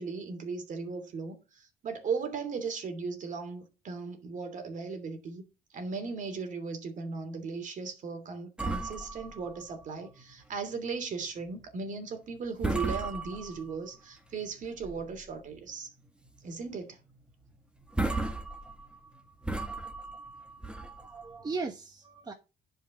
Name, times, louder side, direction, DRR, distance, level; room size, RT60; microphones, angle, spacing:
voice 1, 0.0-5.4 5.7-15.9 16.4-17.0, right 5 dB, 50° right, 2.9 m, -37 dB
sound 1, 8.6-10.4 10.7-10.9 11.4-11.6 12.2-12.4 12.6-14.0 14.4-15.3 15.7-15.8 16.3-16.5 16.7-16.8 17.5-17.6 17.8-21.5, right 2 dB, 5° right, 1.5 m, -35 dB
voice 2, 20.8-22.3, right 4 dB, 25° right, 1.2 m, -38 dB
10.5 x 5.3 x 5.8 m
cardioid pair, 110°, 17 cm